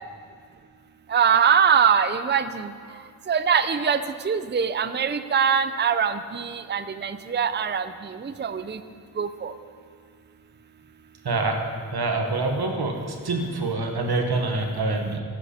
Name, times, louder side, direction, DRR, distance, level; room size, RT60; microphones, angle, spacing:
voice 1, 1.1-2.7 3.3-7.9 8.2-8.8 9.2-9.5, right 7 dB, 30° right, 11 dB, 0.5 m, -22 dB
voice 2, 11.2-11.6 11.9-15.2, right 3 dB, 90° right, 3 dB, 1.3 m, -26 dB
13.5 x 10.5 x 4.3 m, 2.1 s
wide cardioid pair, 60°, 37 cm